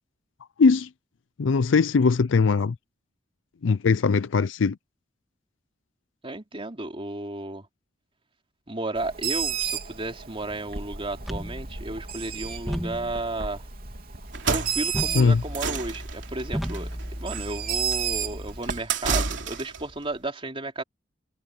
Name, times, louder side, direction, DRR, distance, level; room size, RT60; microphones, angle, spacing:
voice 1, 0.6-0.9 1.4-2.7 3.6-4.8 15.1-15.4, left 4 dB, 80° left, 0.5 m, -20 dB
voice 2, 6.2-7.7 8.7-13.6 14.5-16.9 17.2-20.8, right 2 dB, 30° right, 3.8 m, -33 dB
Bird, 9.0-18.8, right 8 dB, 55° right, 3.2 m, -33 dB
sound 1, 11.2-18.6, equal, ahead, 2.9 m, -36 dB
sound 2, 14.2-19.9, right 5 dB, 70° right, 3.5 m, -31 dB
head